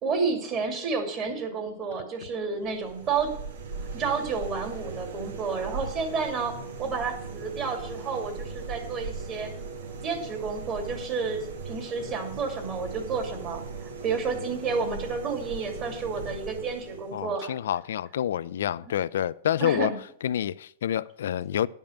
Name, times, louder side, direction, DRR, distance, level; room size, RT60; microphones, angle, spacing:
voice 1, 0.0-3.3 3.9-9.5 10.0-17.6 18.9-19.0 19.6-20.0, right 5 dB, 30° right, 2.4 m, -30 dB
sound 1, 2.6-17.3, right 4 dB, 85° right, 2.2 m, -39 dB
voice 2, 17.1-19.9 20.2-21.7, left 10 dB, 80° left, 0.4 m, -28 dB
10.5 x 5.4 x 7.0 m
supercardioid pair, 150°, 0 cm